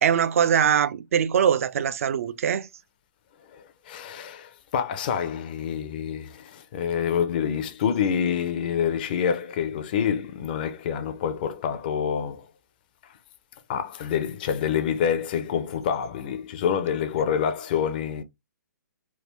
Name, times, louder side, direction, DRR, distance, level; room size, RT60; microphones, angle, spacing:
voice 1, 0.0-2.7, right 8 dB, 50° right, 0.3 m, -22 dB
voice 2, 3.5-12.5 13.7-18.2, left 8 dB, 30° left, 0.4 m, -27 dB
3.4 x 2.2 x 2.9 m
hypercardioid pair, 160°, 10 cm